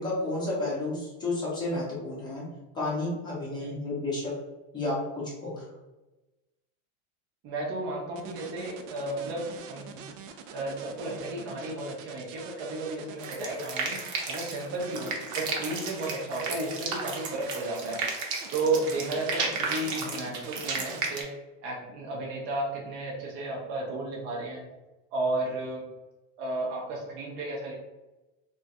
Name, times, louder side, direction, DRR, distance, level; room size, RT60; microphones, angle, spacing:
voice 1, 0.0-2.5 2.7-4.3 4.7-5.7, left 2 dB, 10° left, -6 dB, 0.6 m, -31 dB
voice 2, 7.4-10.2 10.5-14.0 14.3-18.0 18.5-21.3 21.6-24.7 25.1-25.9 26.4-27.7, right 2 dB, 30° right, -3 dB, 0.4 m, -33 dB
sound 1, 8.2-21.0, right 6 dB, 90° right, 0.5 m, -45 dB
sound 2, 13.2-21.2, right 4 dB, 60° right, 0.8 m, -33 dB
2.5 x 2.2 x 3.9 m, 1.1 s
cardioid pair, 175°, 37 cm